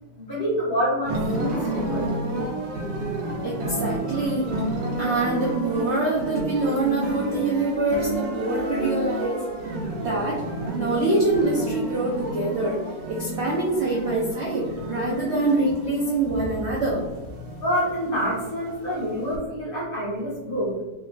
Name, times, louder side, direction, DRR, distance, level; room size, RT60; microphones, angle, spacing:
voice 1, 0.2-2.1 17.6-20.7, equal, 35° left, -8 dB, 1.1 m, -27 dB
sound 1, 1.0-19.4, right 1 dB, 85° right, 1.4 m, -31 dB
voice 2, 3.4-4.5 5.0-9.4 9.9-10.4 10.7-12.8 13.1-17.0, right 2 dB, 60° right, -5 dB, 0.7 m, -25 dB
3.3 x 3.0 x 2.3 m, 1.1 s
omnidirectional pair, 1.8 m